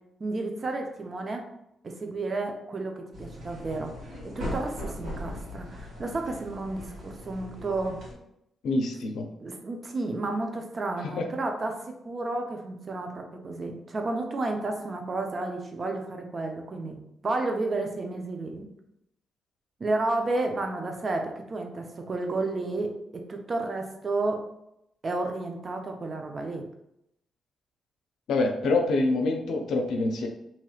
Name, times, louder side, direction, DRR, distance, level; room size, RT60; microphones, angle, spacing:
voice 1, 0.2-1.5 1.8-8.0 9.4-18.7 19.8-24.4 25.0-26.7, right 2 dB, 45° right, 3 dB, 0.6 m, -32 dB
sound 1, 3.1-8.1, equal, 75° right, 1.5 m, -39 dB
voice 2, 8.6-9.2 11.0-11.3 28.3-30.3, left 2 dB, 75° left, 3 dB, 0.5 m, -26 dB
3.0 x 2.9 x 2.3 m, 0.80 s
supercardioid pair, 60°, 0 cm